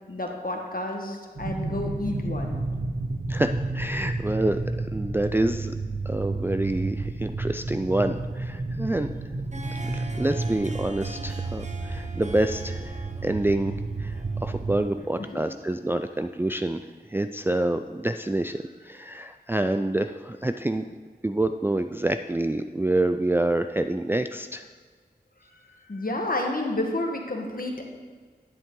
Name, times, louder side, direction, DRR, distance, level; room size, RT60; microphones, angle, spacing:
voice 1, 0.1-2.6 15.0-15.4 25.6-27.9, left 1 dB, 60° left, 2 dB, 1.3 m, -31 dB
sound 1, 1.4-14.8, right 2 dB, 70° right, 1.0 m, -31 dB
voice 2, 3.3-4.6 4.9-5.7 6.1-9.1 9.8-13.7 14.0-14.1 14.4-16.8 17.1-18.6 18.8-20.8 21.2-24.6, right 1 dB, 15° right, 7 dB, 0.3 m, -27 dB
Harp, 9.2-17.0, right 2 dB, 45° right, 0.7 m, -44 dB
11.0 x 7.3 x 3.8 m, 1.5 s
wide cardioid pair, 45°, 17 cm